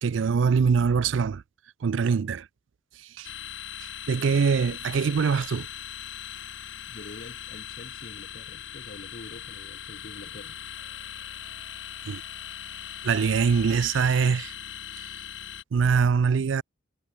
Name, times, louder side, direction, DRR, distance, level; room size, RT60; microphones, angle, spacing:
voice 1, 0.0-1.4 1.8-2.4 3.2-3.3 4.1-5.7 12.1-12.2 13.0-14.5 15.7-16.6, right 6 dB, 70° right, 0.4 m, -23 dB
sound 1, 3.2-15.6, left 10 dB, 65° left, 2.0 m, -40 dB
voice 2, 6.9-10.6, left 2 dB, 45° left, 1.1 m, -45 dB
Trumpet, 10.8-13.3, right 4 dB, 35° right, 5.6 m, -63 dB
head